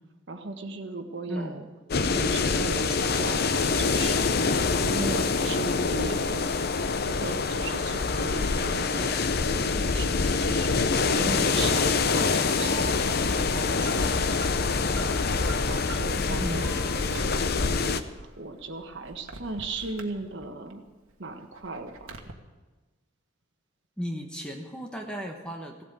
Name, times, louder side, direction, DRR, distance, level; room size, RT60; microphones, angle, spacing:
voice 1, 0.3-1.7 2.1-4.3 4.8-6.7 7.0-14.3 15.0-20.8 21.2-22.1, right 3 dB, 55° right, 4 dB, 1.5 m, -37 dB
voice 2, 1.3-1.6 16.2-16.8 24.0-25.8, equal, 5° left, 2 dB, 1.2 m, -35 dB
sound 1, 1.9-18.0, left 4 dB, 50° left, 0.6 m, -25 dB
Alarm, 12.5-20.7 21.1-22.3, right 4 dB, 85° right, 1.4 m, -45 dB
16.5 x 8.3 x 8.5 m, 1.2 s
head